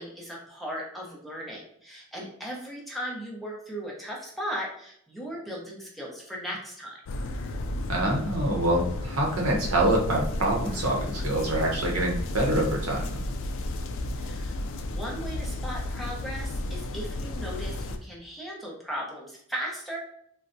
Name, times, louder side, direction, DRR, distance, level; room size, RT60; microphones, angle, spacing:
voice 1, 0.0-7.0 14.2-14.6 14.9-20.0, equal, ahead, -4 dB, 0.7 m, -37 dB
sound 1, 7.1-18.0, left 1 dB, 60° left, 0.3 m, -33 dB
voice 2, 7.9-13.2, right 1 dB, 75° right, -1 dB, 0.9 m, -26 dB
3.9 x 2.2 x 2.5 m, 0.68 s
head